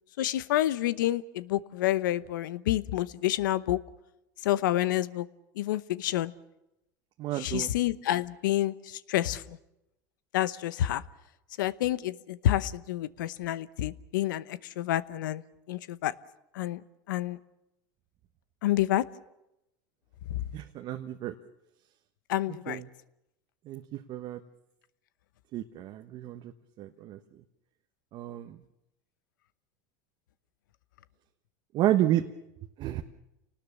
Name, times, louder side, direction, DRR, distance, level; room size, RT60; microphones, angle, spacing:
voice 1, 0.2-3.8 4.4-5.3 5.6-6.3 7.4-9.6 10.3-11.0 11.6-15.4 15.7-16.1 16.5-16.8 17.1-17.4 18.6-19.0 22.3-22.8, left 13 dB, 85° left, 16 dB, 0.9 m, -28 dB
voice 2, 7.2-7.7 20.5-21.3 22.5-22.9 23.6-24.4 25.5-27.2 28.1-28.6 31.7-32.2 32.8-33.0, right 13 dB, 50° right, 5 dB, 1.3 m, -31 dB
28.0 x 19.0 x 7.2 m, 0.89 s
supercardioid pair, 115°, 10 cm